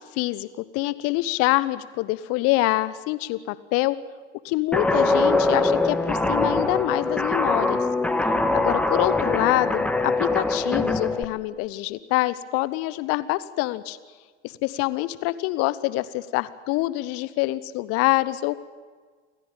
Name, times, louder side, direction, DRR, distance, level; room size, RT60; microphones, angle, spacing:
voice 1, 0.1-4.0 4.4-7.8 8.5-14.0 14.4-18.5, left 18 dB, 40° left, 16 dB, 1.1 m, -25 dB
Guitar, 4.7-11.2, left 2 dB, 5° left, 1.6 m, -23 dB
28.5 x 14.5 x 9.0 m, 1.5 s
figure-of-eight pair, 80°, 35 cm